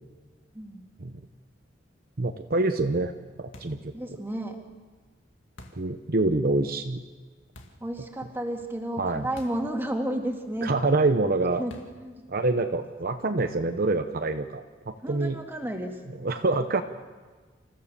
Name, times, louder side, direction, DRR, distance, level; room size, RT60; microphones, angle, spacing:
voice 1, 0.5-0.9 3.9-4.6 7.8-10.7 11.6-11.7 12.0-12.3 15.0-15.9, right 1 dB, 10° right, 2 dB, 2.3 m, -32 dB
voice 2, 2.2-3.1 3.4-3.9 5.8-7.0 9.0-9.3 10.6-11.6 12.3-15.4 16.1-16.8, right 2 dB, 50° right, 7 dB, 0.9 m, -26 dB
sound 1, 3.5-3.9 5.6-5.9 7.6-7.9 9.4-9.7 10.0-10.1 11.7-12.1, left 1 dB, 85° left, 2.2 m, -47 dB
28.0 x 15.0 x 6.8 m, 1.4 s
head